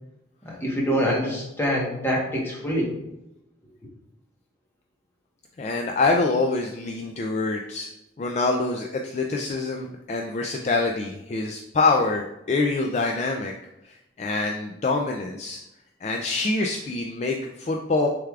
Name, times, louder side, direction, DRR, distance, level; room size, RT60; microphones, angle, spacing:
voice 1, 0.4-2.9, equal, 15° left, -3 dB, 1.1 m, -25 dB
voice 2, 5.6-7.9 8.2-13.5 13.8-15.6 16.0-18.1, left 3 dB, 35° left, 2 dB, 0.3 m, -25 dB
6.5 x 3.4 x 2.3 m, 0.89 s
head